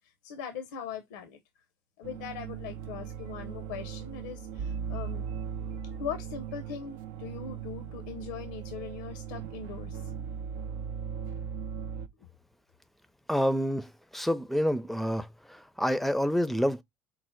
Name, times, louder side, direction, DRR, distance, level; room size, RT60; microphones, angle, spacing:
voice 1, 0.2-1.4 2.0-5.2 6.0-10.1, left 7 dB, 85° left, 0.6 m, -40 dB
sound 1, 2.0-12.1, right 7 dB, 75° right, 0.5 m, -38 dB
voice 2, 13.3-15.3 15.8-16.8, equal, ahead, 0.5 m, -27 dB
4.7 x 2.0 x 4.3 m
hypercardioid pair, 75°, 9 cm